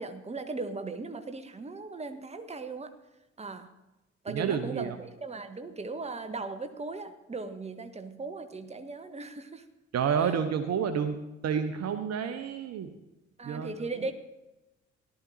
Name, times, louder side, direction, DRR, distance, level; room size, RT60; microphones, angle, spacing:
voice 1, 0.0-2.9 3.4-3.7 4.2-9.6 10.2-10.3 13.4-14.1, right 3 dB, 20° right, 8 dB, 1.2 m, -38 dB
voice 2, 4.3-5.0 9.9-11.2 11.4-12.9 13.4-13.9, right 7 dB, 50° right, 9 dB, 1.0 m, -29 dB
17.5 x 11.5 x 2.8 m, 0.98 s
figure-of-eight pair, 45°, 34 cm